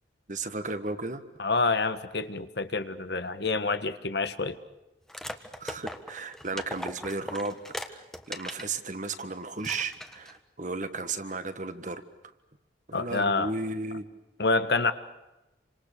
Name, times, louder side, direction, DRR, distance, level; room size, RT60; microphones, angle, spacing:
voice 1, 0.3-1.2 5.6-7.6 7.9-12.0 12.9-14.1, right 3 dB, 45° right, 10 dB, 1.6 m, -34 dB
voice 2, 1.4-4.6 12.9-13.5 14.4-14.9, left 3 dB, 65° left, 10 dB, 1.5 m, -27 dB
sound 1, 5.1-8.7 9.1-9.2 9.6-10.4, left 1 dB, 5° left, 1.5 m, -39 dB
29.0 x 26.0 x 6.8 m, 0.99 s
head